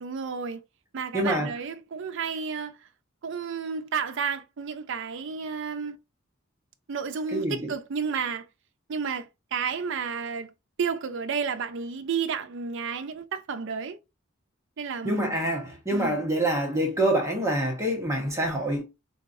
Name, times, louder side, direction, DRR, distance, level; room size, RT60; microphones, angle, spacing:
voice 1, 0.0-0.6 0.9-2.8 3.2-6.0 6.9-8.4 8.9-10.5 10.8-14.0 14.8-15.3 15.9-16.2, right 6 dB, 65° right, 0.4 m, -31 dB
voice 2, 1.1-1.5 7.3-7.7 15.0-18.8, right 1 dB, 15° right, 1.0 m, -26 dB
3.7 x 2.9 x 2.6 m
head